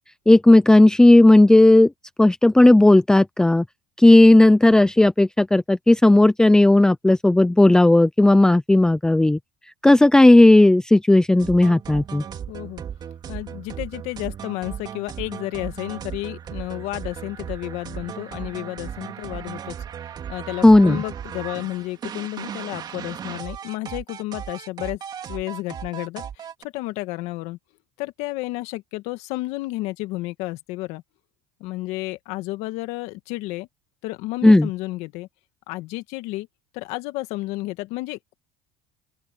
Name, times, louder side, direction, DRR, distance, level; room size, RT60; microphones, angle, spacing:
voice 1, 0.3-1.9 2.2-3.6 4.0-9.4 9.8-12.2 20.6-21.0 34.4-34.7, left 2 dB, 5° left, 0.7 m, -14 dB
sound 1, 11.4-26.7, right 8 dB, 35° right, 2.7 m, -36 dB
voice 2, 12.5-12.8 13.3-19.7 20.3-25.0 25.3-26.5 26.7-27.6 28.0-31.0 31.6-33.7 34.0-35.3 35.7-36.5 36.7-38.3, left 19 dB, 70° left, 1.8 m, -31 dB
open air
supercardioid pair, 120°, 12 cm